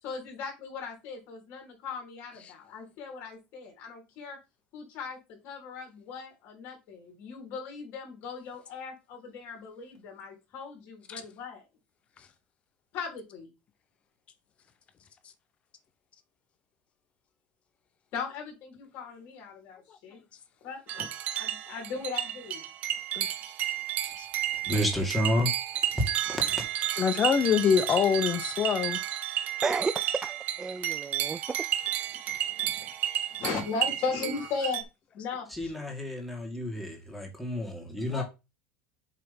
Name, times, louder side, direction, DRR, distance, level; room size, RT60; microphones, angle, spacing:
voice 1, 0.0-4.4 4.7-11.6 12.9-13.5 18.1-20.2 20.6-21.1 21.4-22.7 32.2-34.8 35.1-35.5 38.1-38.2, left 5 dB, 55° left, 3.6 m, -38 dB
sound 1, 20.9-34.8, right 12 dB, 45° right, 0.9 m, -32 dB
voice 2, 24.7-25.5 25.9-26.6 35.5-38.2, equal, ahead, 2.1 m, -30 dB
voice 3, 27.0-29.0, left 7 dB, 30° left, 0.8 m, -24 dB
voice 4, 29.6-31.6, right 4 dB, 15° right, 0.4 m, -32 dB
7.5 x 3.4 x 5.3 m
cardioid pair, 140°, 4 cm